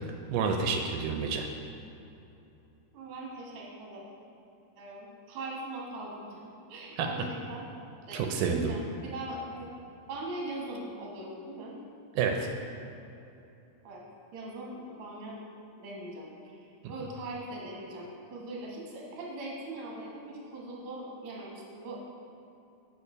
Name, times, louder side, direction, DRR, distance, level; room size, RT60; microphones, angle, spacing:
voice 1, 0.3-1.5 7.0-7.3 8.1-8.7 12.2-12.5, right 5 dB, 85° right, 3 dB, 2.1 m, -29 dB
voice 2, 2.9-4.0 4.8-6.4 6.7-7.7 8.1-9.7 10.1-11.7 13.8-14.0 14.3-15.4 15.8-16.2 16.9-22.0, right 2 dB, 55° right, -3 dB, 1.9 m, -40 dB
7.0 x 5.0 x 4.9 m, 2.8 s
omnidirectional pair, 3.7 m